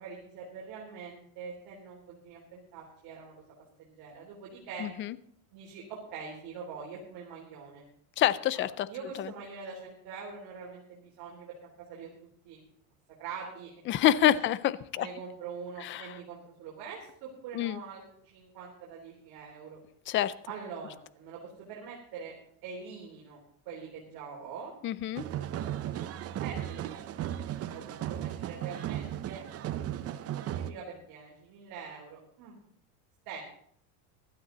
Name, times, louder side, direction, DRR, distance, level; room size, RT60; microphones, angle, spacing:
voice 1, 0.0-3.4 3.8-4.9 5.5-7.8 8.9-12.1 12.4-12.6 13.2-13.7 15.0-19.8 20.5-22.3 22.6-23.4 23.7-24.7 26.4-27.2 27.5-29.4 30.3-32.6 33.3-33.4, right 5 dB, 55° right, -3 dB, 3.8 m, -44 dB
voice 2, 4.8-5.2 8.2-8.9 9.2-9.3 13.9-15.1 15.8-16.2 17.5-17.8 20.1-20.3 24.8-25.2, left 12 dB, 30° left, 18 dB, 0.4 m, -27 dB
sound 1, 25.2-30.7, right 11 dB, 35° right, 0.8 m, -36 dB
16.0 x 12.5 x 4.0 m, 0.64 s
cardioid pair, 145°, 44 cm